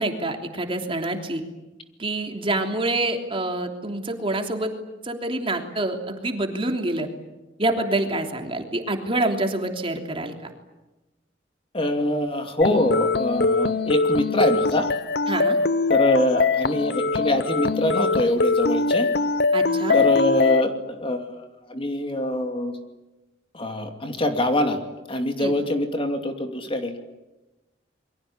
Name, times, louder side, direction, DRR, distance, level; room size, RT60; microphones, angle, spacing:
voice 1, 0.0-1.4 2.0-4.7 5.0-7.1 7.6-10.3 15.3-15.6 19.5-20.0 25.4-25.5, right 2 dB, 30° right, 4 dB, 3.2 m, -26 dB
voice 2, 11.7-14.9 15.9-19.1 19.9-22.8 23.5-24.8 25.1-27.0, left 1 dB, 30° left, 5 dB, 2.6 m, -24 dB
sound 1, 12.6-20.6, left 4 dB, 60° left, 1.0 m, -22 dB
27.5 x 23.5 x 8.7 m, 1.0 s
head